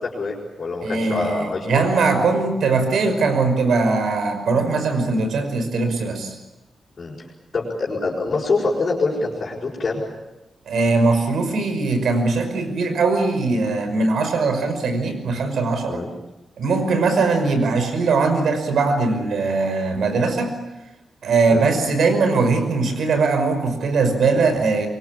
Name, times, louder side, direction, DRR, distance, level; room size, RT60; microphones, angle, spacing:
voice 1, 0.0-1.8 7.0-7.1 7.5-10.0 15.9-16.1 21.5-21.7, left 3 dB, 40° left, -5 dB, 6.2 m, -25 dB
voice 2, 0.8-6.3 10.7-16.0 16.6-20.5 21.2-24.9, right 3 dB, 75° right, 7 dB, 5.6 m, -20 dB
25.5 x 23.5 x 8.6 m, 1.0 s
wide cardioid pair, 175°, 0 cm